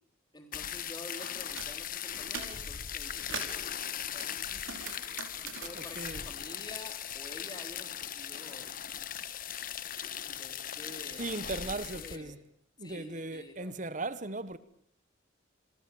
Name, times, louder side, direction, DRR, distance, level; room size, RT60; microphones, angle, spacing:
voice 1, 0.3-4.8 5.4-8.7 10.3-11.4 11.6-12.4 12.8-13.8, left 2 dB, 20° left, 3.6 m, -49 dB
sound 1, 0.5-12.2, left 9 dB, 45° left, 1.2 m, -39 dB
sound 2, 1.2-1.7 2.1-2.6 3.0-3.6 4.2-7.1 7.4-8.5, right 5 dB, 90° right, 5.3 m, -43 dB
voice 2, 5.7-6.2 11.2-12.4 12.8-14.6, right 2 dB, 40° right, 1.2 m, -37 dB
28.0 x 23.5 x 7.1 m
head